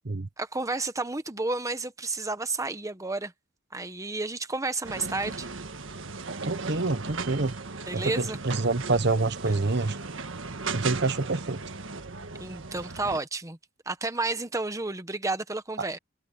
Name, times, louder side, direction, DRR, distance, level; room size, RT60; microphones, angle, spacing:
voice 1, 0.4-3.3 3.7-5.5 7.9-8.4 9.5-9.6 12.4-13.6 13.9-16.0, right 3 dB, 15° right, 1.1 m, -31 dB
sound 1, 4.8-13.2, right 4 dB, 80° right, 1.5 m, -37 dB
voice 2, 6.4-7.5 7.9-10.0 10.7-11.6, right 3 dB, 60° right, 1.1 m, -27 dB
head